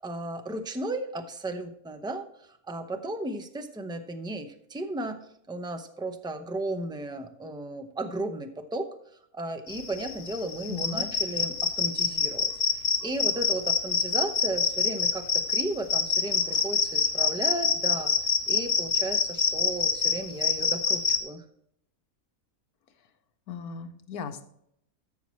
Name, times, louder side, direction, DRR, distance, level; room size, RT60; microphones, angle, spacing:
voice 1, 0.0-2.3 2.7-5.2 5.5-8.9 9.3-18.1 18.5-21.4, right 2 dB, 5° right, 7 dB, 0.3 m, -34 dB
sound 1, 9.7-21.2, left 5 dB, 45° left, 1.2 m, -26 dB
voice 2, 10.7-11.0 23.5-24.4, left 6 dB, 85° left, 8 dB, 1.4 m, -37 dB
13.5 x 5.8 x 3.1 m, 0.73 s
omnidirectional pair, 1.6 m